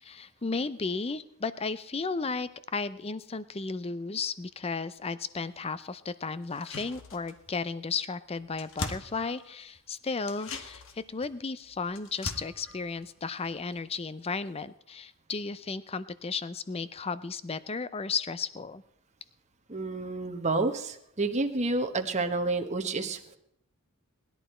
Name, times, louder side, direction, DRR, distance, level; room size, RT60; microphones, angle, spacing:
voice 1, 0.0-18.8, left 4 dB, 25° left, 15 dB, 0.5 m, -34 dB
sound 1, 6.4-7.6 7.9-8.0 8.2-9.8 10.2-14.0 14.2-14.3, left 3 dB, 60° left, 1.3 m, -42 dB
voice 2, 19.7-23.4, right 3 dB, 30° right, 5 dB, 1.2 m, -29 dB
19.0 x 11.5 x 4.4 m, 0.75 s
head